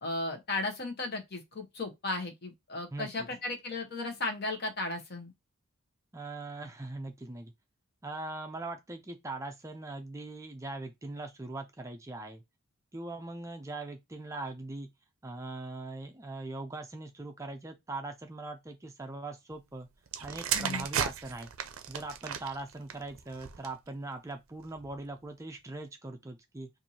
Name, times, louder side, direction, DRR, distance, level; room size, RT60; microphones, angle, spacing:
voice 1, 0.0-5.3 20.5-20.9, left 2 dB, 50° left, 1.0 m, -35 dB
voice 2, 2.9-3.3 6.1-7.5 8.0-12.4 12.9-14.9 15.2-19.9 20.2-21.5 21.9-26.7, right 2 dB, 15° right, 0.4 m, -41 dB
sound 1, 20.1-23.9 24.7-25.0, right 8 dB, 70° right, 0.5 m, -35 dB
4.5 x 2.6 x 2.7 m
head